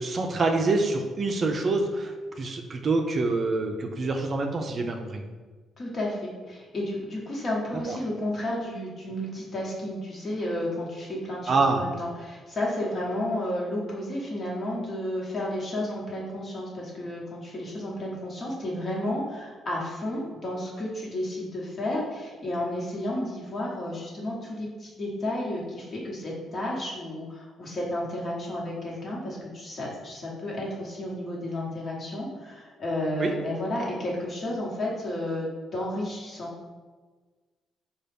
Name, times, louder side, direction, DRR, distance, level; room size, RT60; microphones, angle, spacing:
voice 1, 0.0-5.2 7.9-8.0 11.5-11.8 33.2-33.3, right 3 dB, 45° right, 3 dB, 0.4 m, -26 dB
voice 2, 5.8-35.5 35.7-36.5, left 1 dB, 45° left, -4 dB, 1.2 m, -32 dB
4.0 x 2.3 x 3.4 m, 1.4 s
cardioid pair, 90°, 0 cm